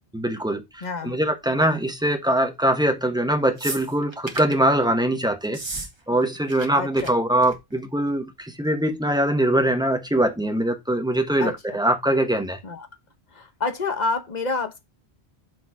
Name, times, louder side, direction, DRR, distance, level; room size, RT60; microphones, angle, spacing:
voice 1, 0.1-5.6 6.1-12.6, right 1 dB, 5° right, 1.0 m, -22 dB
voice 2, 0.8-1.2 6.7-7.1 11.4-11.8 12.6-12.9 13.3-14.8, left 3 dB, 45° left, 1.1 m, -28 dB
sound 1, 3.6-4.6 5.4-5.9 6.2-6.7 6.9-7.1 7.4-7.7 8.7-8.8, right 2 dB, 25° right, 1.2 m, -34 dB
6.3 x 3.9 x 4.7 m
omnidirectional pair, 1.1 m